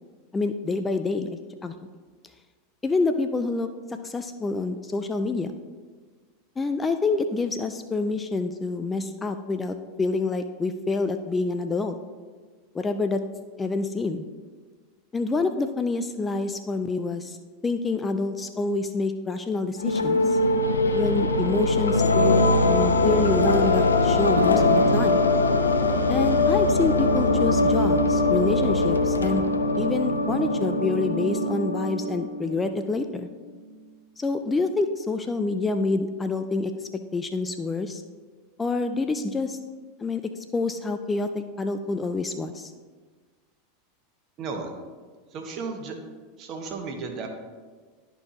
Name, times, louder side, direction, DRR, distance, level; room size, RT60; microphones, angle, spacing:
voice 1, 0.3-1.3 1.6-1.7 2.8-3.7 4.0-5.5 6.6-11.9 12.7-13.2 13.6-14.3 15.1-17.4 17.6-20.4 20.9-25.2 26.1-29.5 29.8-33.3 34.2-36.7 37.1-38.0 38.6-39.6 40.0-42.7, left 3 dB, 20° left, 8 dB, 0.4 m, -27 dB
sound 1, 19.8-32.7, left 2 dB, 85° left, 0.6 m, -22 dB
voice 2, 44.4-44.7 45.3-45.9 46.4-47.3, right 4 dB, 45° right, 3 dB, 1.4 m, -34 dB
12.0 x 4.6 x 2.9 m, 1.5 s
hypercardioid pair, 90°, 0 cm